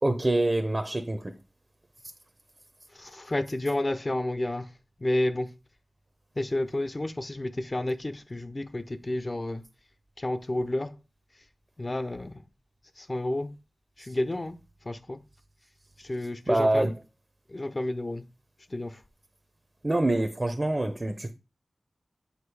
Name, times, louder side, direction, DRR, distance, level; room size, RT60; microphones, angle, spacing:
voice 1, 0.0-1.3 14.0-14.1 16.5-17.0 19.8-21.3, right 1 dB, 30° right, 0.7 m, -26 dB
voice 2, 3.0-4.7 5.0-5.5 6.4-9.6 10.2-10.9 11.8-12.3 13.0-13.5 14.1-14.6 14.9-15.2 16.1-16.9 17.5-18.2 18.7-18.9, left 1 dB, 35° left, 0.6 m, -30 dB
8.1 x 2.7 x 4.7 m
wide cardioid pair, 75°, 0 cm